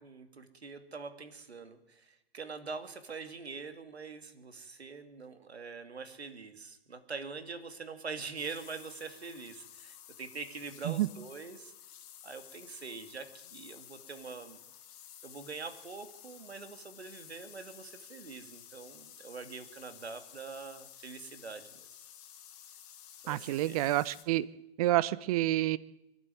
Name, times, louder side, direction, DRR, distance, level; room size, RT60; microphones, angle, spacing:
voice 1, 0.0-11.7 12.2-14.6 15.2-21.9 23.2-23.8, right 4 dB, 80° right, 9 dB, 2.8 m, -44 dB
sound 1, 8.4-24.2, left 10 dB, 35° left, 2.8 m, -53 dB
voice 2, 23.3-24.5 24.8-25.8, right 15 dB, 35° right, 19 dB, 0.8 m, -28 dB
23.5 x 12.0 x 9.4 m, 0.90 s
hypercardioid pair, 130°, 31 cm